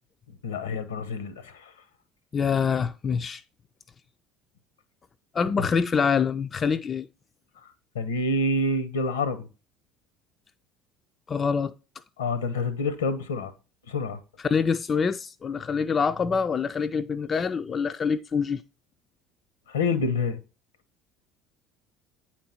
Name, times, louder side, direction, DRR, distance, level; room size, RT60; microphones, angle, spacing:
voice 1, 0.4-1.6 5.6-5.7 7.9-9.5 12.2-13.5 13.9-14.2 19.7-20.4, left 2 dB, 75° left, 0.9 m, -27 dB
voice 2, 2.3-3.4 5.3-7.1 11.3-11.7 14.4-18.6, left 6 dB, 30° left, 0.4 m, -25 dB
8.9 x 4.4 x 4.3 m
figure-of-eight pair, 60°, 0 cm